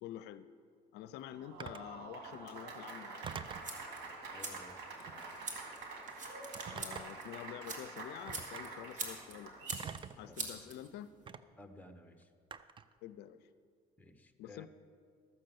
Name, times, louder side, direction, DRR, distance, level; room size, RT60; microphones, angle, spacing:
voice 1, 0.0-0.5 0.9-3.3 6.7-9.8 10.2-11.1 13.0-13.5 14.4-14.7, left 12 dB, 80° left, 14 dB, 0.4 m, -48 dB
Applause, 1.2-9.9, right 3 dB, 85° right, 2.0 m, -47 dB
Telephone, 1.6-1.9 3.2-3.7 5.0-5.4 6.5-7.3 8.3-8.6 9.7-10.3 11.3-11.4 12.5-12.9, right 7 dB, 30° right, 0.4 m, -45 dB
sound 1, 3.3-11.3, right 3 dB, 50° right, 2.1 m, -46 dB
voice 2, 4.3-5.4 10.3-10.5 11.6-12.3 14.0-14.7, left 1 dB, 10° left, 7 dB, 0.9 m, -56 dB
13.5 x 6.5 x 7.7 m, 2.3 s
cardioid pair, 110°, 17 cm